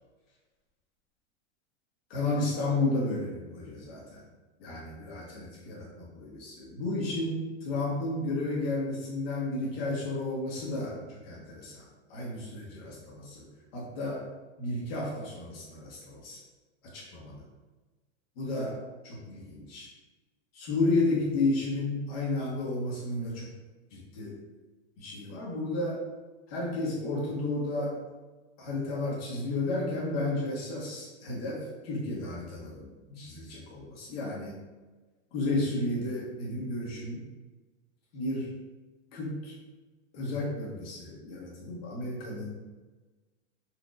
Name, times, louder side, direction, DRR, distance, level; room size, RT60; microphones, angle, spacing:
voice 1, 2.1-4.2 4.6-13.4 13.7-14.2 14.6-16.4 16.9-17.4 18.4-19.9 20.5-23.5 23.9-24.4 25.0-26.0 26.5-28.0 28.6-34.6 35.3-37.2 38.1-38.5 39.1-39.5 40.1-42.6, left 2 dB, 55° left, -4 dB, 1.5 m, -32 dB
4.4 x 2.8 x 2.5 m, 1.2 s
supercardioid pair, 160°, 35 cm